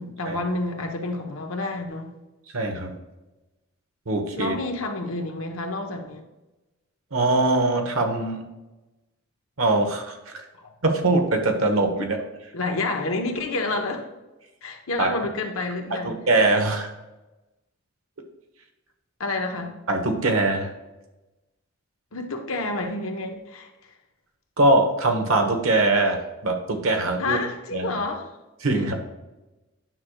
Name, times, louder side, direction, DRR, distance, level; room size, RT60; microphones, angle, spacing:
voice 1, 0.0-2.1 4.3-6.2 10.6-10.7 12.0-12.1 12.5-14.0 14.6-16.2 19.2-19.7 22.1-23.7 27.2-28.3, left 2 dB, 90° left, 3 dB, 1.1 m, -29 dB
voice 2, 2.5-2.9 4.1-4.5 7.1-8.4 9.6-10.4 10.8-12.2 15.0-15.1 15.9-16.9 19.9-20.7 24.6-26.2 26.4-27.4 27.7-27.9 28.6-29.0, right 2 dB, 85° right, 4 dB, 1.2 m, -22 dB
9.4 x 6.4 x 2.3 m, 1.1 s
head